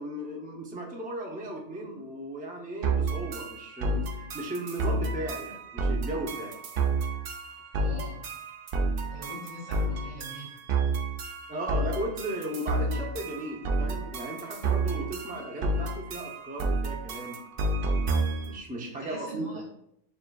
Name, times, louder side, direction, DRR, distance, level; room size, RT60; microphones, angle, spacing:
voice 1, 0.0-4.0 4.3-6.5 11.5-17.4 18.0-19.6, right 1 dB, 15° right, -1 dB, 0.3 m, -36 dB
sound 1, 2.8-18.6, right 2 dB, 60° right, 0.6 m, -30 dB
voice 2, 7.8-8.2 9.1-10.5 18.8-19.6, right 1 dB, 40° right, -3 dB, 1.2 m, -42 dB
6.6 x 2.6 x 2.3 m, 0.72 s
omnidirectional pair, 1.3 m